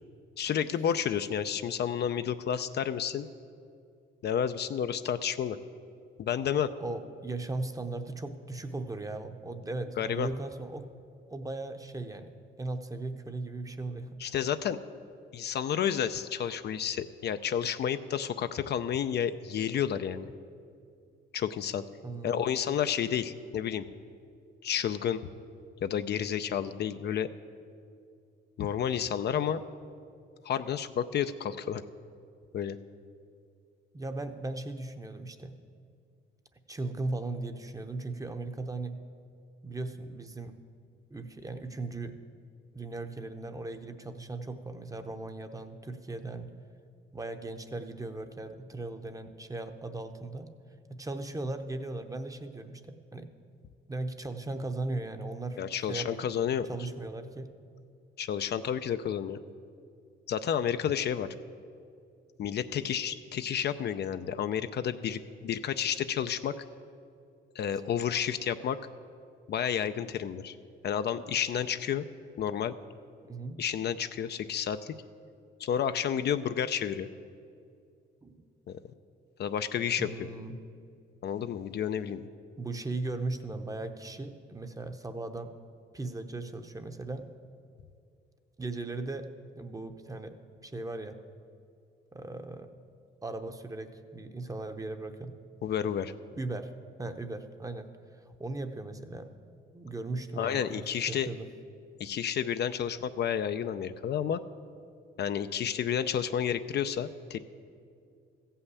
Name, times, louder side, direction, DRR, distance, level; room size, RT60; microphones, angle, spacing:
voice 1, 0.4-3.3 4.2-5.6 6.2-6.7 10.0-10.3 14.2-14.8 15.3-20.3 21.3-21.8 22.2-23.9 24.6-25.2 25.8-27.3 28.6-29.6 30.4-31.8 32.5-32.8 55.6-56.7 58.2-59.4 60.3-61.3 62.4-66.6 67.6-68.8 69.5-70.6 70.8-72.1 72.4-72.7 73.6-74.9 75.6-77.1 78.7-78.8 79.4-80.3 81.2-82.3 95.6-96.1 100.4-101.3 102.0-104.4 105.2-107.4, left 8 dB, 55° left, 10 dB, 0.5 m, -31 dB
voice 2, 6.8-10.8 11.3-14.3 22.0-22.4 33.9-35.5 36.7-38.9 39.6-40.6 41.1-42.2 42.7-46.5 47.1-50.5 50.9-53.3 53.9-55.6 55.9-56.3 56.7-57.5 73.3-73.6 78.2-78.4 80.0-80.6 82.6-85.5 85.9-87.3 88.6-89.3 89.6-90.4 90.6-91.2 92.1-92.7 93.2-95.3 96.4-96.7 97.0-99.3 99.7-101.5, right 2 dB, 15° right, 7 dB, 0.8 m, -37 dB
14.5 x 5.7 x 8.2 m, 2.4 s
cardioid pair, 90°, 20 cm